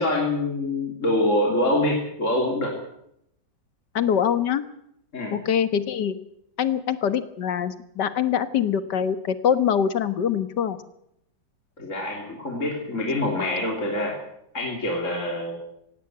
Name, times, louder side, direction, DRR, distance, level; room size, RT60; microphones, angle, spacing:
voice 1, 0.0-2.7 5.1-5.3 11.8-14.2 14.5-15.6, left 1 dB, 40° left, 0 dB, 3.5 m, -25 dB
voice 2, 3.9-4.6 5.3-6.2 6.6-10.8, left 8 dB, 70° left, 13 dB, 1.9 m, -24 dB
17.5 x 16.5 x 9.3 m, 0.76 s
omnidirectional pair, 1.9 m